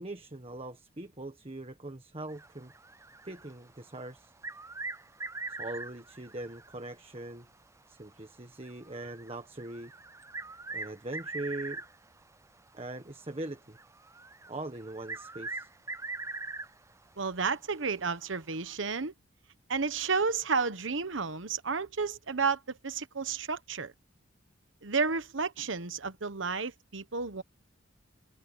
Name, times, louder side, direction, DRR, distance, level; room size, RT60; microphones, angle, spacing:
voice 1, 0.0-2.7 3.2-4.3 5.5-7.5 7.9-9.9 10.7-11.8 12.7-13.8 14.5-15.7, right 2 dB, 30° right, 1.4 m, -41 dB
sound 1, 2.3-3.8 4.2-6.9 7.2-7.3 7.9-8.0 8.6-12.2 13.0-13.2 13.8-16.9 17.3-17.4 18.5-18.7, right 3 dB, 15° right, 0.6 m, -42 dB
voice 2, 17.2-19.1 19.7-23.9 24.8-27.4, right 5 dB, 75° right, 1.1 m, -31 dB
head